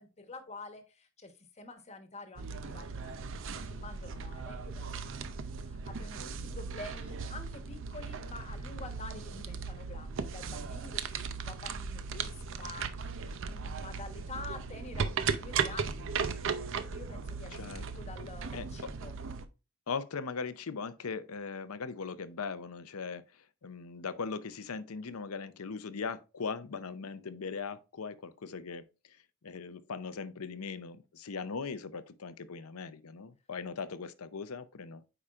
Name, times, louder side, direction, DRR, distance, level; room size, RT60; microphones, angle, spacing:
voice 1, 0.0-19.2, left 2 dB, 30° left, 1.2 m, -48 dB
sound 1, 2.4-19.4, right 5 dB, 60° right, 0.6 m, -37 dB
voice 2, 17.5-17.8 18.5-18.9 19.9-35.0, left 5 dB, 85° left, 0.7 m, -39 dB
8.7 x 5.0 x 2.4 m
head